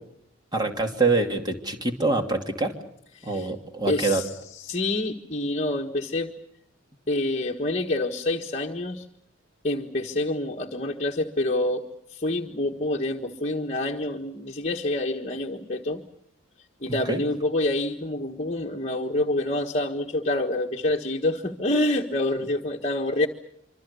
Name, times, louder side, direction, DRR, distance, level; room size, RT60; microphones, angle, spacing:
voice 1, 0.5-2.8 3.2-4.2 16.9-17.2 22.4-22.5, right 3 dB, 20° right, 4 dB, 2.7 m, -25 dB
voice 2, 3.2-3.5 3.9-4.3 4.6-6.3 7.1-9.0 9.6-11.8 12.1-16.0 16.8-23.3, left 2 dB, 30° left, 2 dB, 1.4 m, -27 dB
26.0 x 25.5 x 6.9 m, 0.72 s
head